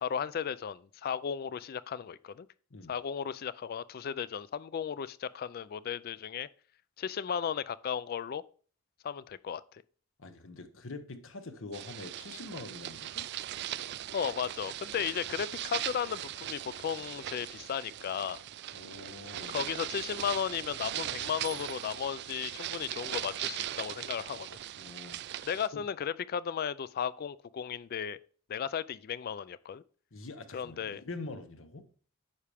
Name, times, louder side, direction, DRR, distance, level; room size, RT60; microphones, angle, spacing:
voice 1, 0.0-2.5 2.9-6.5 7.0-8.4 9.0-9.8 14.1-18.4 19.5-24.6 25.4-28.2 28.5-29.8 30.5-31.0, left 8 dB, 45° left, 0.3 m, -35 dB
voice 2, 10.2-13.3 18.7-19.6 24.7-25.2 25.7-25.8 30.1-31.9, left 3 dB, 60° left, 1.0 m, -44 dB
sound 1, 11.7-25.7, right 12 dB, 50° right, 0.3 m, -39 dB
9.6 x 5.7 x 3.5 m
head